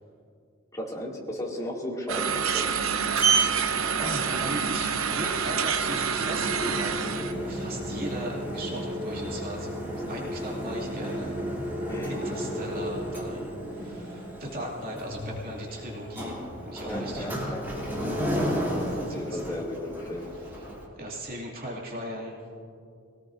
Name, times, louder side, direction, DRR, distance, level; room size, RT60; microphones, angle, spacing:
voice 1, 0.7-2.8 11.9-12.2 16.8-17.6 18.8-20.4, left 1 dB, 15° left, -4 dB, 2.4 m, -35 dB
sound 1, 2.1-7.3, right 6 dB, 75° right, 0.8 m, -27 dB
Sliding door, 2.6-20.9, right 2 dB, 10° right, 2.9 m, -32 dB
voice 2, 4.0-9.8 10.1-11.4 12.1-17.6 18.7-19.4 20.3-22.4, right 1 dB, 45° right, -3 dB, 2.5 m, -38 dB
22.5 x 18.0 x 2.6 m, 2.5 s
head